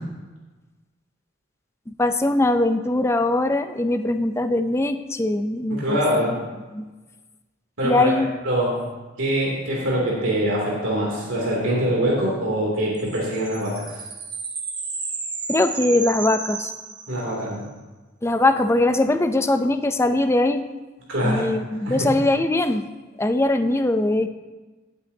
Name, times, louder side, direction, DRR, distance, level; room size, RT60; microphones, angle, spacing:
voice 1, 1.9-6.0 6.7-6.9 7.8-8.3 15.5-16.7 18.2-20.6 21.2-22.9 23.2-24.3, left 2 dB, 15° left, 8 dB, 0.5 m, -21 dB
voice 2, 5.7-6.3 7.8-8.1 8.4-8.8 9.2-14.0 17.1-17.6 21.1-21.5 21.9-22.1, equal, 85° right, -3 dB, 2.8 m, -23 dB
sound 1, 12.9-17.6, right 4 dB, 25° right, 1.2 m, -33 dB
17.0 x 8.3 x 2.8 m, 1.2 s
head